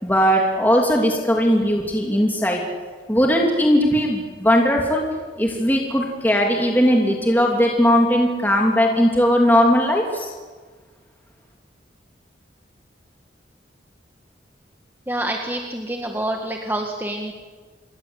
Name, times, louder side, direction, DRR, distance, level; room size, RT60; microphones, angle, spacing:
voice 1, 0.0-2.6 3.1-5.0 5.4-10.3, equal, 10° left, -1 dB, 2.9 m, -18 dB
voice 2, 15.1-17.3, right 1 dB, 10° right, 1 dB, 1.9 m, -27 dB
28.0 x 22.5 x 8.2 m, 1.4 s
head